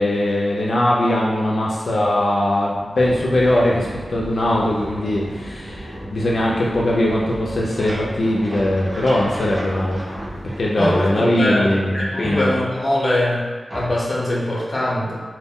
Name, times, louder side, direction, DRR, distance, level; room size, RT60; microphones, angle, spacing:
voice 1, 0.0-10.0 10.6-12.5, left 1 dB, 75° left, -4 dB, 0.3 m, -20 dB
sound 1, 3.0-10.7, equal, 85° right, 0.9 m, -34 dB
sound 2, 7.4-11.2 11.6-12.9 13.7-14.2, equal, 50° right, 0.8 m, -36 dB
voice 2, 10.7-13.4 13.7-15.2, left 1 dB, 35° left, -4 dB, 0.6 m, -22 dB
2.1 x 2.0 x 3.5 m, 1.5 s
wide cardioid pair, 105°, 0 cm